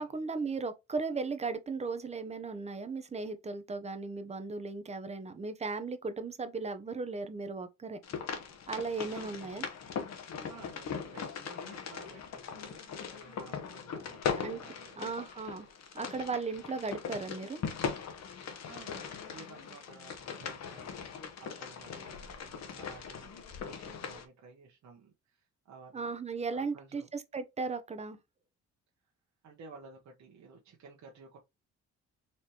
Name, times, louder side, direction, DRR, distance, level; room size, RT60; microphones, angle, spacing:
voice 1, 0.0-8.0 8.7-9.6 14.4-14.6 15.0-15.7 15.9-17.6 25.9-28.2, right 4 dB, 20° right, 0.7 m, -36 dB
sound 1, 8.0-24.3, left 6 dB, 60° left, 0.9 m, -40 dB
voice 2, 9.1-9.5 10.5-15.0 18.7-21.0 21.4-26.1 26.5-27.1 29.4-31.4, right 4 dB, 65° right, 1.1 m, -54 dB
4.2 x 3.1 x 2.8 m
cardioid pair, 90°, 30 cm